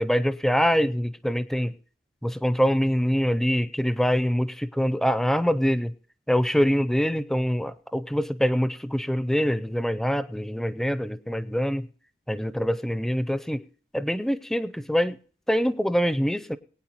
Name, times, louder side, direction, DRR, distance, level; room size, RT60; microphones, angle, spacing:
voice 1, 0.0-1.7 2.2-5.9 6.3-11.9 12.3-13.6 13.9-15.2 15.5-16.6, equal, ahead, 14 dB, 0.5 m, -24 dB
22.0 x 9.2 x 3.0 m, 0.43 s
head